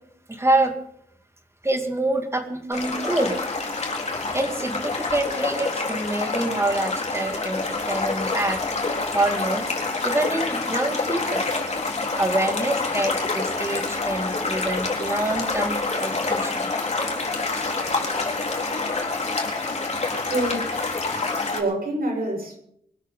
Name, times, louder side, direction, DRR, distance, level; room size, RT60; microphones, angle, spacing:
voice 1, 0.3-0.7 1.6-3.3 4.3-8.6 9.1-9.7 10.0-11.5 12.2-16.7 17.5-17.7, right 2 dB, 15° right, 5 dB, 2.5 m, -26 dB
sound 1, 2.7-21.6, left 3 dB, 45° left, 4.0 m, -27 dB
voice 2, 20.2-20.7 21.1-21.2 21.5-22.6, right 1 dB, 75° right, 0 dB, 7.5 m, -27 dB
24.5 x 13.0 x 3.9 m, 0.70 s
wide cardioid pair, 160°, 16 cm